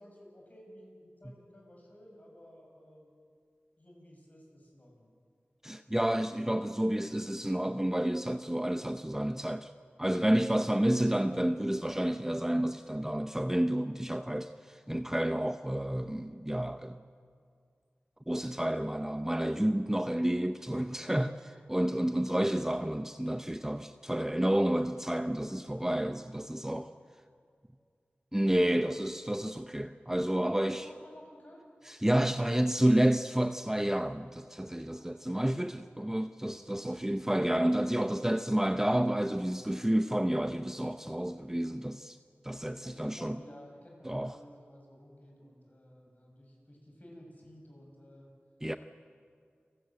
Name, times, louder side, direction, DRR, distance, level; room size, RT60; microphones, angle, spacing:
voice 1, 0.0-3.1 3.8-5.1 20.9-21.6 25.5-25.9 28.6-29.0 30.4-31.7 34.9-35.4 42.6-48.3, equal, 40° left, 7.0 m, -54 dB
voice 2, 5.6-9.7 10.0-17.0 18.3-21.3 21.7-26.9 28.3-30.8 32.0-42.2 42.4-43.4 44.0-44.3 48.6-48.8, right 1 dB, 10° right, 0.6 m, -30 dB
28.5 x 13.5 x 9.1 m
wide cardioid pair, 65°, 4 cm